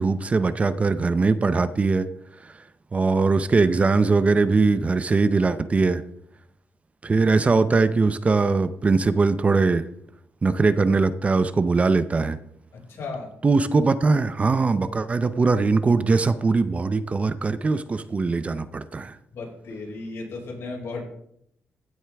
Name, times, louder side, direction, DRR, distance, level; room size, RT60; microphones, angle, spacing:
voice 1, 0.0-2.1 2.9-6.0 7.0-9.9 10.4-12.4 13.4-19.2, right 4 dB, 30° right, 13 dB, 0.6 m, -21 dB
voice 2, 12.7-13.3 19.3-21.0, left 3 dB, 75° left, -2 dB, 5.5 m, -35 dB
15.5 x 8.0 x 3.5 m, 0.71 s
cardioid pair, 120°, 5 cm